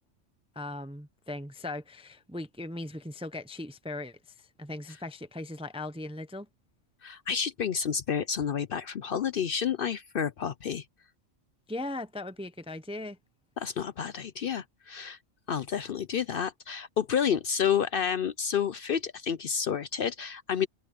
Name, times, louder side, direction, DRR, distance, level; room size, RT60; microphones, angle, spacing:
voice 1, 0.6-6.5 11.7-13.2, left 2 dB, 5° right, 0.5 m, -38 dB
voice 2, 7.0-10.8 13.6-15.2 15.5-20.7, left 7 dB, 55° left, 0.7 m, -30 dB
open air
omnidirectional pair, 1.3 m